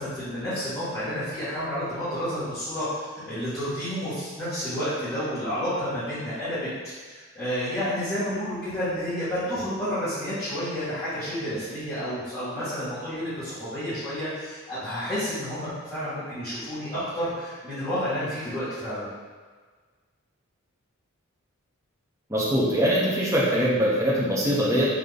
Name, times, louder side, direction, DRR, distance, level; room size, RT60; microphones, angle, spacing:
voice 1, 0.0-2.8 3.1-6.6 7.0-19.1, equal, 15° left, -17 dB, 1.3 m, -30 dB
voice 2, 22.3-24.9, equal, 15° right, -7 dB, 0.7 m, -22 dB
3.9 x 2.8 x 3.4 m, 1.5 s
head